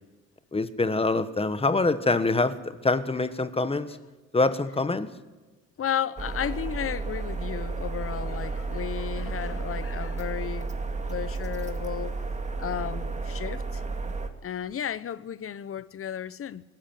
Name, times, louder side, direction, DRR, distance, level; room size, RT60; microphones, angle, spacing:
voice 1, 0.5-4.0 4.3-5.1, left 3 dB, 20° left, 1.4 m, -25 dB
voice 2, 5.8-10.7 11.1-12.2 12.6-13.8 14.4-16.6, left 9 dB, 45° left, 0.9 m, -33 dB
sound 1, 6.2-14.3, right 3 dB, 25° right, 2.2 m, -32 dB
22.5 x 13.5 x 9.3 m
cardioid pair, 90°, 30 cm